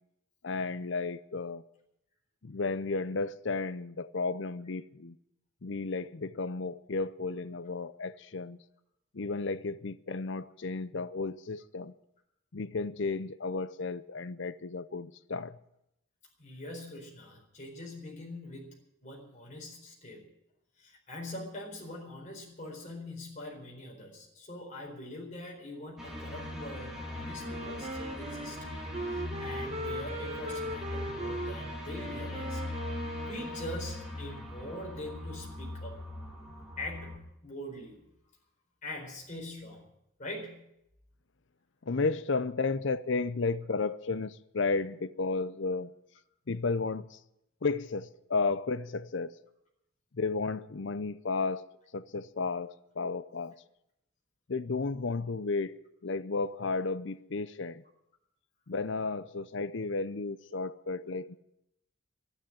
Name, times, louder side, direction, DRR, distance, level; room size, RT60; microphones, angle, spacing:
voice 1, 0.4-1.6 2.4-5.2 5.6-8.6 9.1-11.9 12.5-15.6 41.8-45.9 46.5-47.2 47.6-49.3 50.1-53.6 54.5-57.8 58.7-61.4, left 3 dB, 60° left, 0.6 m, -33 dB
voice 2, 16.4-18.8 19.0-20.3 20.8-28.6 29.1-32.6 33.0-35.9 36.8-38.1 38.8-39.8 40.2-40.7, left 1 dB, 35° left, 4.3 m, -43 dB
sound 1, 26.0-37.2, left 1 dB, ahead, 2.8 m, -40 dB
Wind instrument woodwind instrument, 27.4-34.1, right 1 dB, 30° right, 2.1 m, -39 dB
12.0 x 10.5 x 10.0 m
head